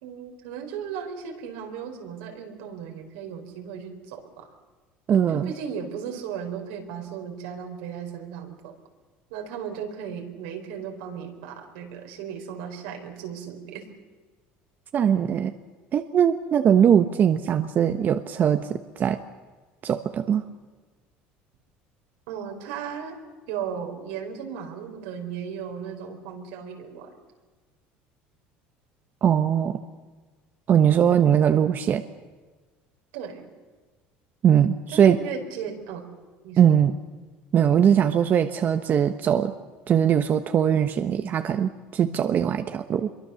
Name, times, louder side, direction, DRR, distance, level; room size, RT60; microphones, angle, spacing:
voice 1, 0.0-4.5 5.3-8.7 9.3-13.8 22.3-23.2 23.5-27.1 31.5-31.7 33.1-33.5 34.9-36.0 36.4-36.8, right 7 dB, 85° right, 3 dB, 4.3 m, -36 dB
voice 2, 5.1-5.5 14.9-15.5 15.9-19.2 19.8-20.4 29.2-29.8 30.7-32.0 34.4-35.2 36.6-36.9 37.5-39.5 39.9-43.1, right 8 dB, 45° right, 8 dB, 1.0 m, -21 dB
25.0 x 23.0 x 7.0 m, 1.3 s
supercardioid pair, 105°, 5 cm